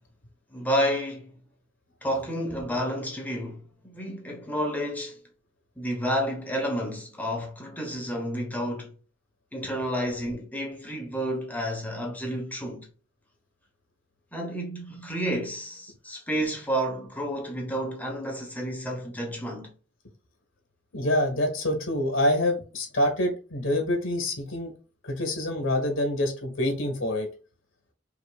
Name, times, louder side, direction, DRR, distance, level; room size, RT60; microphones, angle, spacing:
voice 1, 0.5-1.3 2.0-5.2 5.8-8.9 9.5-12.9 14.3-19.7, equal, 10° left, 1.0 m, -30 dB
voice 2, 20.9-24.7 25.0-27.3, left 1 dB, 90° left, 1.2 m, -26 dB
5.1 x 3.0 x 2.3 m
head